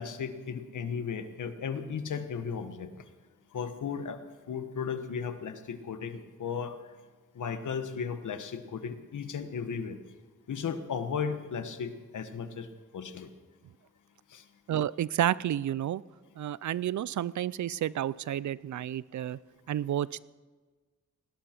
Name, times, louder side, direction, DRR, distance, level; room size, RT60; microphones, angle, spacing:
voice 1, 0.0-2.9 3.5-4.2 4.5-6.7 7.4-10.0 10.5-12.7 12.9-13.3 14.3-14.4, left 6 dB, 85° left, 9 dB, 1.3 m, -35 dB
voice 2, 14.7-16.0 16.4-19.4 19.7-20.2, right 11 dB, 75° right, 20 dB, 0.5 m, -30 dB
19.5 x 16.5 x 4.4 m, 1.4 s
wide cardioid pair, 105°, 30 cm